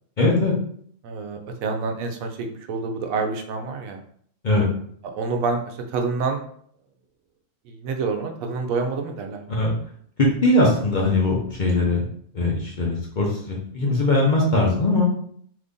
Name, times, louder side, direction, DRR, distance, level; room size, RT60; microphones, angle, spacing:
voice 1, 0.2-0.5 4.4-4.7 9.5-9.7 10.2-12.0 12.3-15.0, left 2 dB, 45° left, -3 dB, 0.7 m, -20 dB
voice 2, 1.0-4.0 5.1-6.4 7.7-9.4 10.7-10.9, right 4 dB, 90° right, 4 dB, 1.0 m, -27 dB
2.9 x 2.6 x 3.5 m, 0.62 s
omnidirectional pair, 1.4 m